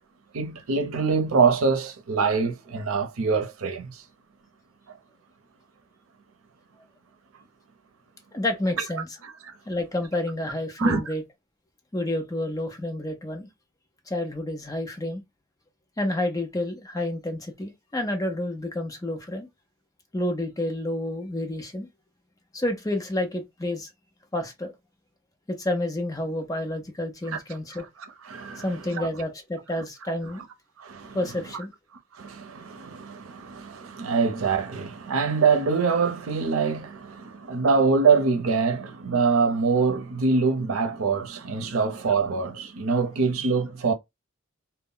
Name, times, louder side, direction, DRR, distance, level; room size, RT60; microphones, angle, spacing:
voice 1, 0.3-4.0 9.2-9.5 10.8-11.0 27.3-27.4 28.2-28.7 28.9-29.1 30.8-31.2 32.2-43.9, right 4 dB, 90° right, 0.6 m, -24 dB
voice 2, 8.3-9.1 9.7-11.2 11.9-13.5 14.1-15.2 16.0-19.5 20.1-21.9 22.5-23.9 24.3-24.7 25.5-27.9 28.6-30.4 31.1-31.7, left 1 dB, 15° left, 0.5 m, -29 dB
2.1 x 2.0 x 3.6 m
head